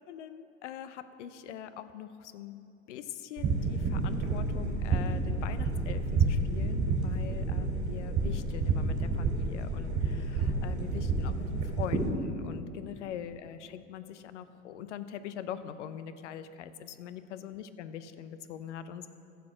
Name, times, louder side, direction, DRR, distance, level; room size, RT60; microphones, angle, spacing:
voice 1, 0.0-2.6 2.9-19.1, left 9 dB, 70° left, 12 dB, 0.8 m, -42 dB
sound 1, 3.4-12.1, right 3 dB, 40° right, 2.5 m, -30 dB
14.5 x 6.9 x 6.2 m, 2.6 s
hypercardioid pair, 80°, 37 cm